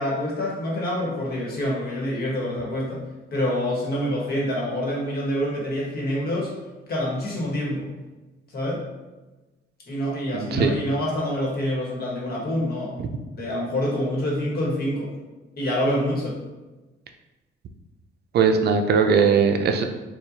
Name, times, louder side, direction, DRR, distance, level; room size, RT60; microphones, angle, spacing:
voice 1, 0.0-3.0 3.3-6.5 6.9-7.9 8.5-8.8 9.9-15.1 15.6-16.4, left 1 dB, 50° left, -4 dB, 1.4 m, -26 dB
voice 2, 10.3-10.7 18.3-19.8, right 6 dB, 55° right, 5 dB, 0.4 m, -19 dB
4.3 x 2.4 x 2.7 m, 1.1 s
cardioid pair, 90°, 20 cm